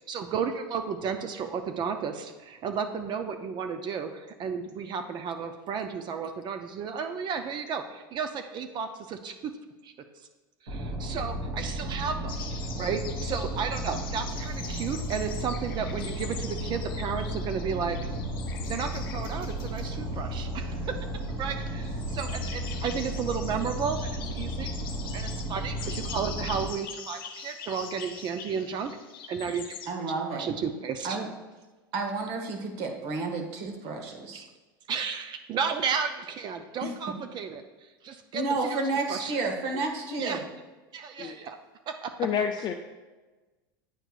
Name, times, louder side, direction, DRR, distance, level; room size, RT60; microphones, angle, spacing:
voice 1, 0.1-9.3 9.8-9.9 10.6-18.0 18.7-20.9 21.4-24.1 24.3-24.7 25.1-29.0 29.3-29.7 30.4-31.2 34.3-34.5 34.9-37.6 38.0-38.8 39.1-39.3 40.2-40.4 40.9-41.6 41.9-42.3, right 6 dB, 40° right, 7 dB, 0.5 m, -33 dB
sound 1, 10.7-26.7, right 1 dB, 85° right, 1.3 m, -34 dB
sound 2, 12.3-29.9, left 7 dB, 75° left, 0.8 m, -43 dB
voice 2, 29.9-30.5 31.0-31.3 31.9-34.4 36.8-36.9 38.3-40.5, right 3 dB, 60° right, 3 dB, 1.2 m, -31 dB
voice 3, 42.2-42.7, left 8 dB, 40° left, 3 dB, 0.4 m, -28 dB
9.0 x 4.5 x 2.4 m, 1.2 s
hypercardioid pair, 95°, 12 cm